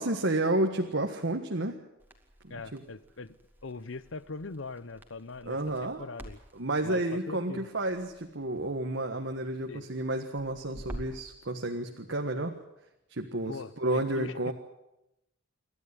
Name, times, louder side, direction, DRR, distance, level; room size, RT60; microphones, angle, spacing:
voice 1, 0.0-1.8 2.4-2.8 5.4-6.1 6.5-12.5 13.1-14.5, right 1 dB, 70° right, 4 dB, 1.6 m, -31 dB
Crackle, 2.0-11.3, equal, 10° right, 2.4 m, -49 dB
voice 2, 2.5-3.4 3.6-6.4 6.8-7.7 9.7-9.9 13.5-14.5, left 3 dB, 80° left, 17 dB, 0.9 m, -41 dB
28.0 x 12.5 x 9.9 m, 0.90 s
head